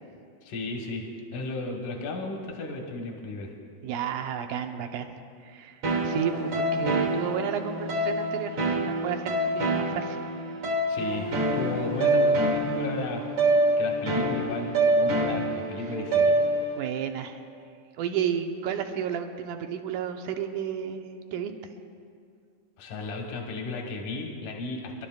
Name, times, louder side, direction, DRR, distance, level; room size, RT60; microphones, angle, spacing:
voice 1, 0.4-3.5 10.9-13.2 13.8-16.4 22.8-25.1, left 3 dB, 80° left, 1 dB, 2.7 m, -34 dB
voice 2, 3.8-5.1 5.4-10.2 16.8-17.4 18.0-21.7, right 8 dB, 80° right, 6 dB, 2.2 m, -32 dB
sound 1, 5.8-16.8, right 1 dB, 55° right, 1.5 m, -26 dB
28.5 x 11.5 x 2.3 m, 2.3 s
omnidirectional pair, 3.6 m